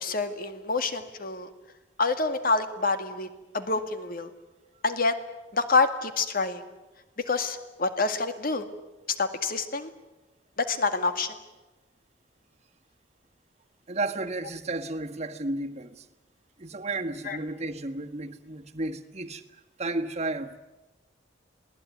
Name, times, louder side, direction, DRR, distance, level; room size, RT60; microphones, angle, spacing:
voice 1, 0.0-1.5 2.0-3.3 3.5-4.3 4.8-5.2 5.5-6.6 7.3-8.7 9.2-9.9 10.6-11.4 17.3-17.4, left 3 dB, 50° left, 2.0 m, -27 dB
voice 2, 13.9-16.0 16.6-19.4 19.8-20.6, right 2 dB, 35° right, 1.6 m, -33 dB
27.5 x 19.0 x 9.5 m
head